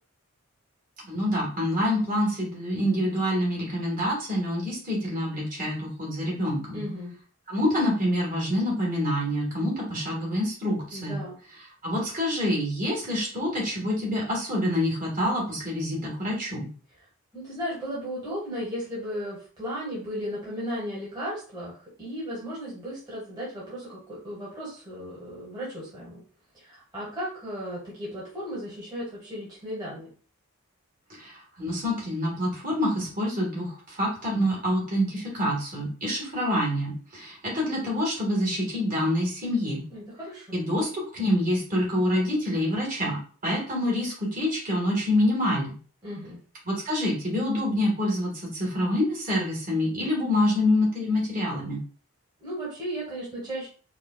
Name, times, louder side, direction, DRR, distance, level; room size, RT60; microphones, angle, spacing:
voice 1, 1.0-6.8 7.5-11.2 11.8-16.7 31.2-39.8 40.5-45.7 46.6-51.8, left 1 dB, 40° right, -4 dB, 1.5 m, -26 dB
voice 2, 6.7-7.1 10.9-11.4 17.3-26.2 26.5-30.1 39.9-40.7 46.0-46.4 52.4-53.7, equal, 20° right, -8 dB, 1.2 m, -35 dB
4.7 x 2.3 x 2.3 m, 0.40 s
head